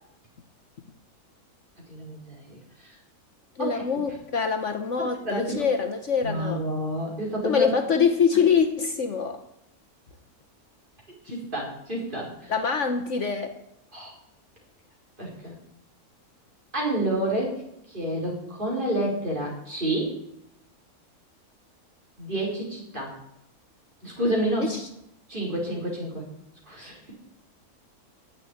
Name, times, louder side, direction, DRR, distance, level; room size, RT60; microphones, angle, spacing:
voice 1, 1.9-2.9 3.6-3.8 5.0-5.6 6.2-7.7 11.2-12.5 13.9-14.1 15.2-15.6 16.7-17.6 17.9-20.2 22.2-23.1 24.0-24.7 25.3-26.2 26.7-27.1, right 1 dB, 30° right, -3 dB, 5.2 m, -29 dB
voice 2, 3.6-6.6 7.4-9.4 12.5-13.5 24.6-24.9, left 6 dB, 55° left, 5 dB, 1.3 m, -24 dB
11.0 x 8.7 x 9.3 m, 0.80 s
omnidirectional pair, 1.6 m